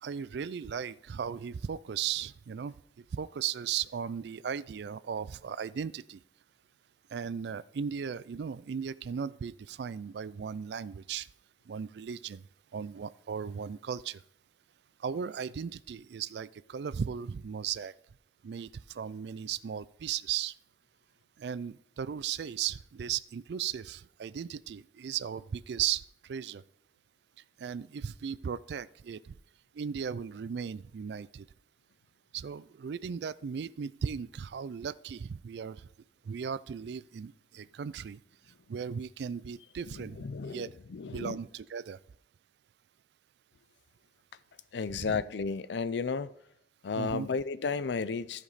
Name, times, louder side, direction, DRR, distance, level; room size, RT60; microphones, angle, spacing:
voice 1, 0.0-2.7 3.1-6.2 7.1-11.3 11.7-12.4 12.7-14.2 15.0-17.9 18.4-20.5 21.4-26.6 27.6-29.4 29.7-31.5 32.3-35.9 36.2-38.2 38.7-40.7 41.1-42.0 45.0-45.2 47.0-47.3, right 7 dB, 70° right, 0.4 m, -36 dB
voice 2, 39.9-41.4 44.7-46.3 46.8-48.4, left 5 dB, 80° left, 0.5 m, -33 dB
14.0 x 5.2 x 4.1 m
head